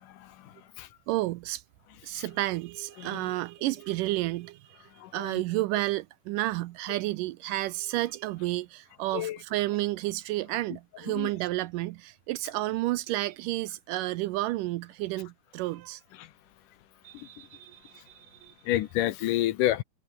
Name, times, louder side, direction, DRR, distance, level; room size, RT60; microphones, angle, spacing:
voice 1, 0.0-0.9 2.2-2.3 3.0-3.2 5.0-5.4 9.1-9.4 11.1-11.3 16.2-16.3 17.1-17.3 18.7-19.8, left 14 dB, 75° left, 2.2 m, -30 dB
voice 2, 1.1-1.6 2.0-4.8 5.1-16.0 17.0-18.5, right 17 dB, 80° right, 2.0 m, -31 dB
omnidirectional pair, 4.1 m